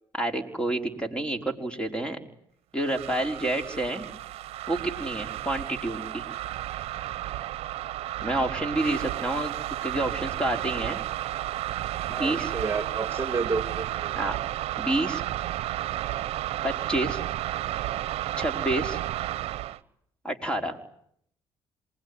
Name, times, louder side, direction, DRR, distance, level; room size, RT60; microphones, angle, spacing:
voice 1, 0.1-2.2 2.7-4.0 4.7-6.3 8.2-9.5 9.8-11.0 12.1-12.5 14.1-14.4 14.8-15.2 16.6-17.2 18.4-19.0 20.2-20.8, right 1 dB, 10° left, 4 dB, 5.0 m, -29 dB
sound 1, 2.8-19.8, right 14 dB, 70° right, 1.0 m, -32 dB
voice 2, 12.1-14.2, right 4 dB, 25° right, 8 dB, 2.5 m, -31 dB
27.0 x 20.5 x 10.0 m, 0.70 s
supercardioid pair, 75°, 10 cm